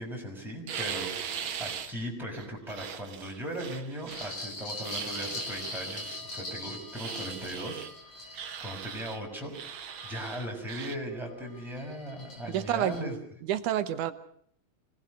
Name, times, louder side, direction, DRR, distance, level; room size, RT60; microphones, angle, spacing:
voice 1, 0.0-7.9 8.2-9.5 10.0-13.2, right 1 dB, ahead, -1 dB, 5.9 m, -38 dB
sound 1, 0.7-1.9 2.3-4.4 4.8-6.2 6.9-7.9 8.3-9.2 9.5-11.0, right 8 dB, 55° right, 1.6 m, -39 dB
sound 2, 4.1-10.8 11.2-13.0, left 2 dB, 60° left, 6.1 m, -42 dB
voice 2, 12.5-13.0 13.4-14.1, right 11 dB, 80° right, 10 dB, 2.6 m, -28 dB
25.0 x 19.0 x 6.5 m, 0.65 s
omnidirectional pair, 3.5 m